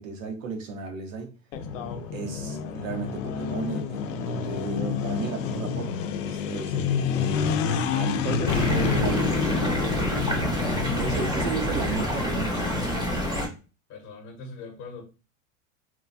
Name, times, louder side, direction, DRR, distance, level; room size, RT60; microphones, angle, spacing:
voice 1, 0.0-1.3 2.1-5.9 6.2-7.6 7.9-13.0, right 5 dB, 70° right, 1.1 m, -34 dB
sound 1, 1.5-12.9, left 6 dB, 70° left, 0.6 m, -29 dB
sound 2, 8.5-13.5, equal, 10° right, 0.8 m, -27 dB
voice 2, 13.9-15.0, left 3 dB, 30° left, 0.9 m, -41 dB
2.9 x 2.2 x 2.6 m
supercardioid pair, 135°, 40 cm